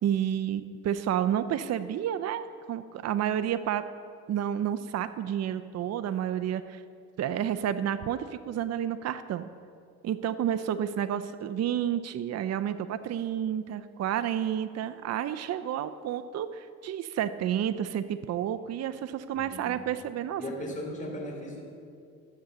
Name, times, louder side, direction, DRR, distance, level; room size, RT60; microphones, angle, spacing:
voice 1, 0.0-3.8 4.3-6.8 7.2-9.5 10.0-20.4, right 10 dB, 60° right, 11 dB, 0.6 m, -30 dB
voice 2, 19.3-19.8 20.4-21.6, equal, 25° left, -1 dB, 3.4 m, -37 dB
13.5 x 7.9 x 6.9 m, 2.3 s
cardioid pair, 90°, 30 cm